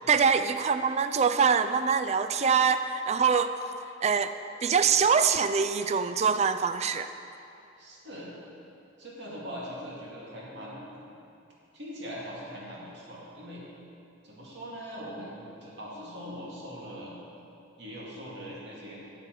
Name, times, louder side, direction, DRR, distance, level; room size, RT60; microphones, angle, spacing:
voice 1, 0.1-3.5 4.0-4.3 4.6-7.1, right 6 dB, 35° right, 10 dB, 0.4 m, -24 dB
voice 2, 7.8-8.4 9.0-11.0 11.7-13.6 14.2-17.2 17.8-19.1, equal, 65° right, -6 dB, 2.2 m, -41 dB
12.5 x 7.7 x 4.6 m, 2.6 s
head